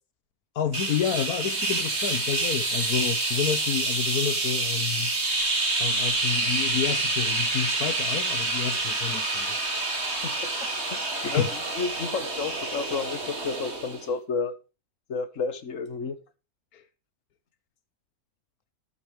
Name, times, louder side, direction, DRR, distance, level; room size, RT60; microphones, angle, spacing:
voice 1, 0.5-5.1 5.8-9.6 11.1-11.5 16.7-16.8, left 8 dB, 80° left, 1.4 m, -29 dB
sound 1, 0.7-14.1, right 2 dB, 45° right, 2.8 m, -28 dB
voice 2, 10.9-11.4 11.7-14.5 15.1-16.2, left 5 dB, 60° left, 1.7 m, -31 dB
13.5 x 11.0 x 3.4 m
omnidirectional pair, 1.5 m